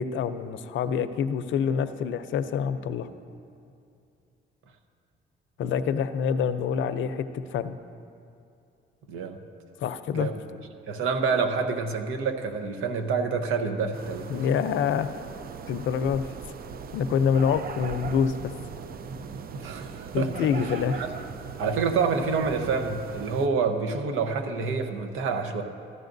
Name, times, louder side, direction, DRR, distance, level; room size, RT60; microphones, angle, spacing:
voice 1, 0.0-3.1 5.6-7.8 9.8-10.3 14.3-15.1 15.7-16.3 16.9-18.5 20.1-21.0, left 7 dB, 75° left, 11 dB, 0.6 m, -26 dB
voice 2, 10.9-14.3 19.5-20.3 21.0-21.1 21.6-25.6, right 5 dB, 90° right, 6 dB, 1.0 m, -27 dB
sound 1, 13.9-23.5, right 6 dB, 50° right, 0.5 m, -39 dB
15.0 x 12.5 x 2.6 m, 2.6 s
cardioid pair, 90°, 20 cm